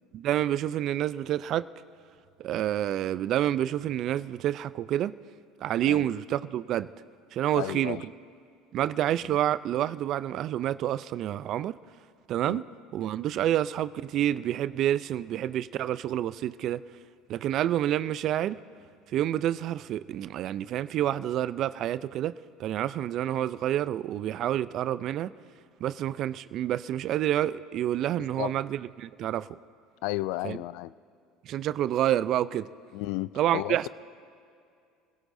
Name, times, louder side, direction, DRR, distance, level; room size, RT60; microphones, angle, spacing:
voice 1, 0.1-1.7 2.4-5.1 5.6-6.9 7.3-8.0 8.7-11.8 12.3-12.6 12.9-16.8 17.3-18.6 19.1-22.3 22.6-25.3 25.8-29.5 30.4-30.6 31.5-32.7 33.4-33.9, right 12 dB, 55° right, 16 dB, 0.4 m, -28 dB
voice 2, 7.6-8.0 9.2-9.4 12.4-12.6 28.2-28.5 30.0-30.9 32.9-33.9, left 17 dB, 75° left, 18 dB, 0.3 m, -33 dB
30.0 x 16.5 x 2.7 m, 2.3 s
supercardioid pair, 85°, 0 cm